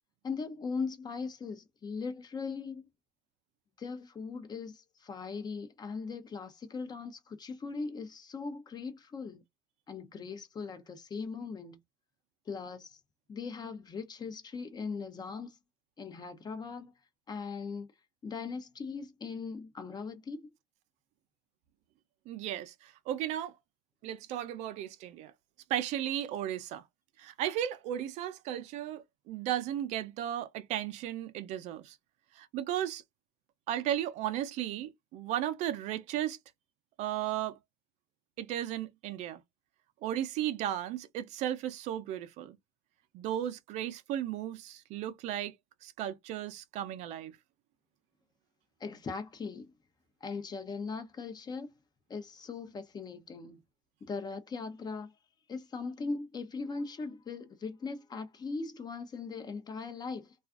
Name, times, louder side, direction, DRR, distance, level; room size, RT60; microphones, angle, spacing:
voice 1, 0.2-2.8 3.8-9.4 9.9-11.8 12.5-13.0 13.3-15.6 16.0-16.9 17.3-17.9 18.2-20.5 48.8-49.7 50.2-51.7 52.1-53.6 54.0-55.1 55.5-60.3, left 4 dB, 35° left, 0.6 m, -39 dB
voice 2, 22.3-23.6 24.0-25.3 25.7-26.8 27.2-32.0 32.3-33.0 33.7-36.4 37.0-37.6 38.4-39.4 40.0-42.6 43.1-45.5 45.8-47.4, right 11 dB, 70° right, 0.5 m, -35 dB
2.4 x 2.4 x 2.4 m
hypercardioid pair, 70°, 12 cm